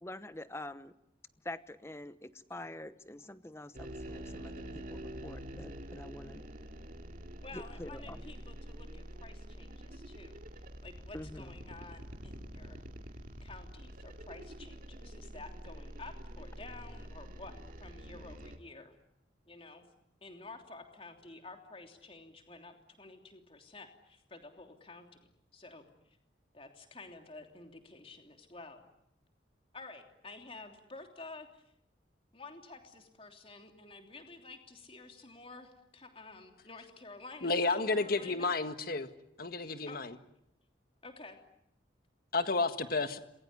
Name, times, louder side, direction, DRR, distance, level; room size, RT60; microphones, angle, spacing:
voice 1, 0.0-0.9 1.4-6.4 7.5-8.3 11.1-11.5, left 1 dB, 15° left, 13 dB, 1.0 m, -46 dB
sound 1, 3.7-18.6, right 1 dB, 45° right, 2.4 m, -46 dB
voice 2, 7.4-12.8 13.4-18.9 19.5-19.9 20.2-26.2 26.5-28.8 29.7-31.6 32.3-38.5 39.8-40.0 41.0-41.4, left 3 dB, 30° left, 4 dB, 3.2 m, -51 dB
voice 3, 37.4-39.1 39.4-40.1 42.3-43.2, left 3 dB, 50° left, 9 dB, 1.7 m, -31 dB
27.0 x 21.5 x 9.8 m, 0.80 s
head